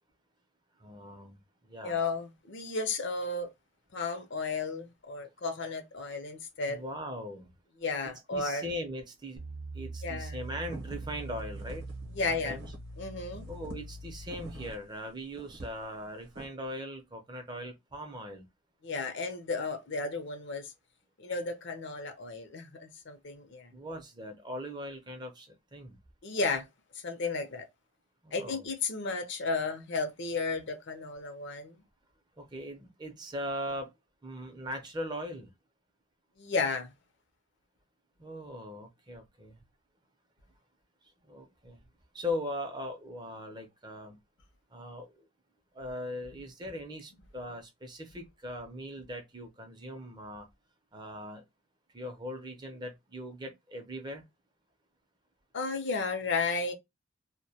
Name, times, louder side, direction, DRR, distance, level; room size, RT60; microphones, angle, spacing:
voice 1, 0.8-2.0 6.7-7.5 8.0-9.4 9.7-11.9 12.3-12.6 13.5-18.5 23.7-26.0 28.2-28.7 32.4-33.9 34.2-35.5 38.2-39.6 41.3-41.8 42.1-44.2 44.7-45.3 45.7-50.5 50.9-51.4 51.9-54.2, equal, 20° right, 0.5 m, -40 dB
voice 2, 1.8-3.5 3.9-6.8 7.8-8.6 10.0-10.4 12.2-12.6 13.0-13.5 18.8-20.7 21.2-23.7 26.2-26.6 27.0-27.7 28.3-31.8 36.4-36.9 55.5-56.7, left 4 dB, 60° left, 0.6 m, -33 dB
sound 1, 9.4-14.7, right 2 dB, 90° right, 0.4 m, -42 dB
sound 2, 10.4-13.1 13.4-16.5, right 1 dB, 55° right, 0.7 m, -47 dB
2.1 x 2.1 x 2.7 m
head